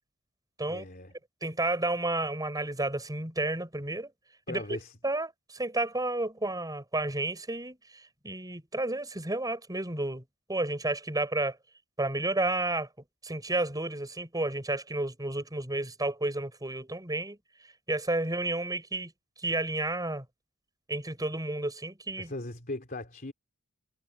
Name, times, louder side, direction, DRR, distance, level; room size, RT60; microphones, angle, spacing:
voice 1, 0.7-1.1 4.5-4.9 22.2-23.3, left 2 dB, 45° left, 3.3 m, -39 dB
voice 2, 1.4-4.1 4.5-4.6 5.0-7.8 8.2-10.2 10.5-11.6 12.0-12.9 13.2-17.4 17.9-19.1 19.4-20.2 20.9-22.3, right 2 dB, 20° right, 6.3 m, -31 dB
head